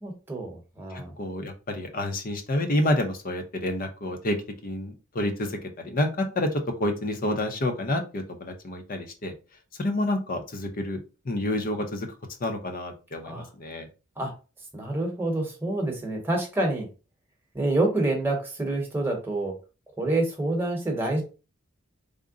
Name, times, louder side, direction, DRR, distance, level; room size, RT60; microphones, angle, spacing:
voice 1, 0.0-1.1 13.2-13.5 14.2-14.3 14.7-16.9 17.5-19.5 20.0-21.2, right 2 dB, 10° right, 1 dB, 1.0 m, -27 dB
voice 2, 0.9-4.4 4.6-9.3 9.8-11.0 11.2-12.1 12.4-13.9, left 1 dB, 40° left, 6 dB, 0.6 m, -29 dB
3.7 x 2.1 x 3.7 m, 0.32 s
head